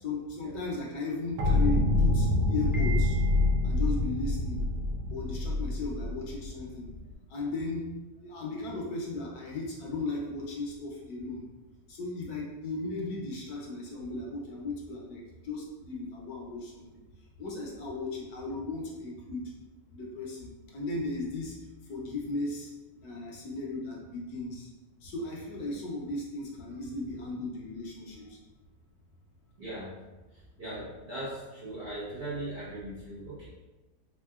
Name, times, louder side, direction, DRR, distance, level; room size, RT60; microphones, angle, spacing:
voice 1, 0.0-3.2 3.6-4.6 5.1-6.9 7.3-7.9 8.2-11.4 11.9-16.8 17.4-19.4 19.9-21.5 21.9-22.7 23.0-24.7 25.0-28.4, left 2 dB, 65° left, -2 dB, 1.2 m, -36 dB
sound 1, 1.4-7.1, left 2 dB, 90° right, 1.4 m, -26 dB
Piano, 2.7-3.8, right 5 dB, 20° left, 0.4 m, -42 dB
voice 2, 29.6-29.9 30.6-33.5, right 1 dB, 55° right, -9 dB, 0.7 m, -39 dB
3.6 x 3.6 x 2.3 m, 1.1 s
omnidirectional pair, 1.9 m